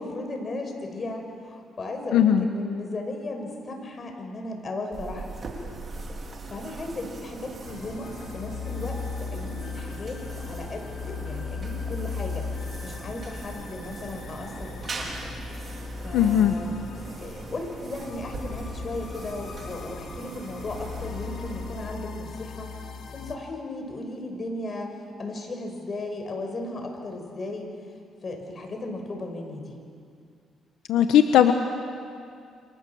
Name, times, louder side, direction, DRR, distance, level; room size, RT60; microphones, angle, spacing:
voice 1, 0.0-5.3 6.2-15.3 16.0-16.7 17.2-22.7 23.1-27.7 28.2-29.8, left 2 dB, 40° left, 3 dB, 5.8 m, -36 dB
voice 2, 2.1-2.5 16.1-16.5 30.9-31.5, left 10 dB, 90° left, 6 dB, 1.2 m, -18 dB
sound 1, 4.9-22.3, right 3 dB, 45° right, 4.9 m, -40 dB
sound 2, 7.6-23.3, left 5 dB, 65° left, 3.0 m, -37 dB
29.0 x 26.5 x 7.3 m, 2.3 s
cardioid pair, 90°, 0 cm